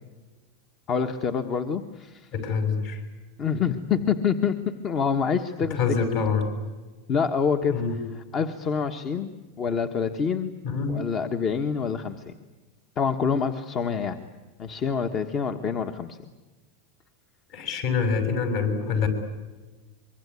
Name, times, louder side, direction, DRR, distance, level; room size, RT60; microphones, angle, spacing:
voice 1, 0.9-2.3 3.4-5.9 7.1-7.7 8.3-9.3 9.6-10.5 10.9-12.3 13.0-14.2 14.6-16.2, left 6 dB, 30° left, 8 dB, 1.4 m, -26 dB
voice 2, 2.3-3.0 5.7-6.5 7.7-8.0 10.6-11.0 17.5-19.1, left 5 dB, 50° left, 8 dB, 6.7 m, -25 dB
24.5 x 24.0 x 9.7 m, 1.2 s
supercardioid pair, 150°, 0 cm